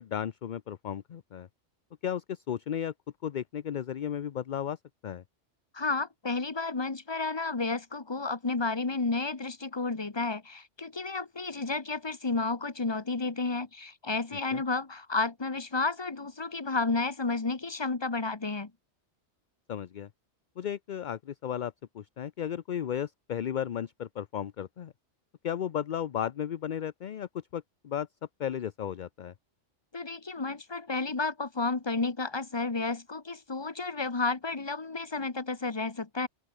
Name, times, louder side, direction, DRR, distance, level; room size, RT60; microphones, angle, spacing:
voice 1, 0.0-1.5 2.0-2.9 3.2-4.8 5.0-5.2 14.5-14.6 19.7-20.1 20.6-24.9 25.4-28.1 28.4-29.3, left 9 dB, 50° left, 0.6 m, -34 dB
voice 2, 5.7-18.7 29.9-36.3, left 3 dB, 20° left, 1.2 m, -31 dB
open air
omnidirectional pair, 1.2 m